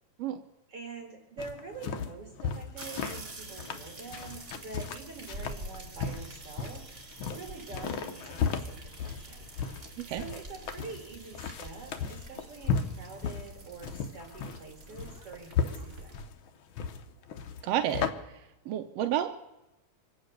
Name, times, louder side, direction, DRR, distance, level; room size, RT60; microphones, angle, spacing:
voice 1, 0.7-9.5 9.8-16.3, right 4 dB, 55° right, 2 dB, 2.9 m, -46 dB
sound 1, 1.4-18.1, left 6 dB, 65° left, 1.3 m, -35 dB
sound 2, 2.8-16.1, right 2 dB, 30° right, 1.1 m, -47 dB
voice 2, 17.6-18.1 18.7-19.4, right 11 dB, 75° right, 7 dB, 1.6 m, -30 dB
25.0 x 8.8 x 6.6 m, 0.97 s
omnidirectional pair, 3.3 m